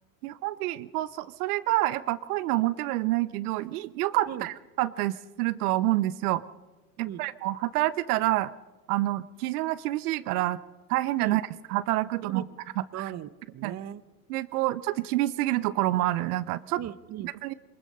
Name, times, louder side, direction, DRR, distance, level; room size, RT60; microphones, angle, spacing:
voice 1, 0.2-6.4 7.0-8.5 8.9-10.6 10.9-11.4 11.7-12.4 13.0-13.1 13.6-13.7 14.3-16.8 17.2-17.5, right 17 dB, 70° right, 15 dB, 0.8 m, -27 dB
voice 2, 12.9-14.0 16.8-17.3, right 11 dB, 35° right, 15 dB, 0.9 m, -37 dB
23.0 x 21.0 x 5.5 m, 1.2 s
hypercardioid pair, 100°, 47 cm